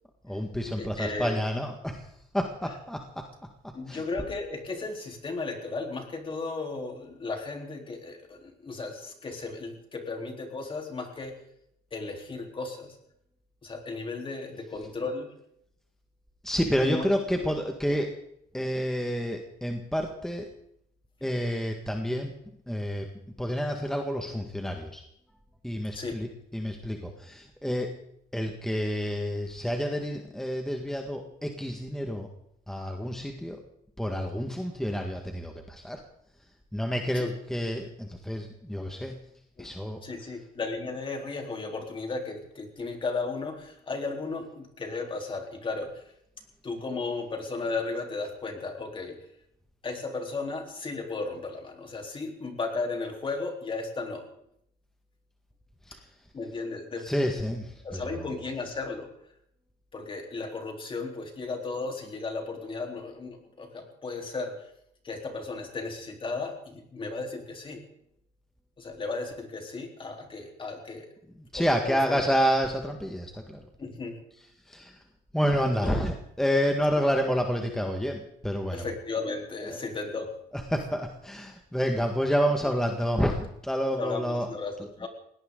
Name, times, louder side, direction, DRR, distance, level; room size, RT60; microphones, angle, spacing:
voice 1, 0.2-3.3 3.6-4.0 16.4-18.2 18.5-20.5 21.2-22.3 22.7-23.1 23.4-25.0 25.6-27.9 28.3-32.3 32.7-33.6 34.0-36.0 36.7-39.1 39.6-40.0 55.8-56.1 57.0-58.3 71.4-73.6 74.6-75.0 75.3-78.9 79.6-79.8 80.5-84.5, equal, 5° left, 3 dB, 1.7 m, -29 dB
voice 2, 0.8-1.4 3.7-11.4 11.9-13.0 13.6-15.3 16.8-17.1 25.9-26.2 37.1-37.3 39.6-39.7 40.0-46.0 46.6-49.2 49.8-54.2 56.3-57.1 57.8-59.1 59.9-64.7 65.0-67.8 68.8-71.1 71.5-72.2 73.8-74.2 75.8-76.0 78.7-80.3 84.0-85.1, left 3 dB, 30° left, 2 dB, 3.7 m, -35 dB
20.0 x 18.0 x 3.9 m, 0.74 s
cardioid pair, 110°, 17 cm